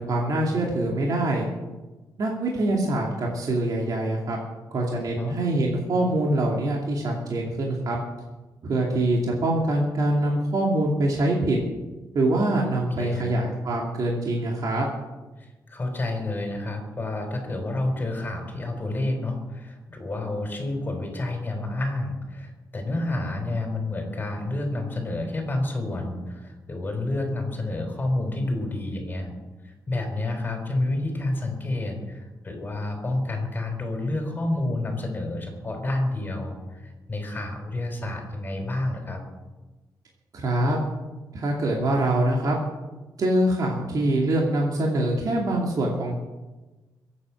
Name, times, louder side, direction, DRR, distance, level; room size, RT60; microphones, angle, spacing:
voice 1, 0.0-1.4 2.2-4.4 4.7-8.0 8.6-11.6 12.1-14.9 40.3-40.8 41.3-42.6 43.2-46.1, right 1 dB, 55° right, -1 dB, 2.6 m, -24 dB
voice 2, 5.0-5.4 13.0-13.3 15.4-29.3 29.6-39.2, left 2 dB, 25° left, 3 dB, 4.2 m, -29 dB
22.5 x 8.7 x 6.2 m, 1.2 s
wide cardioid pair, 135°, 7 cm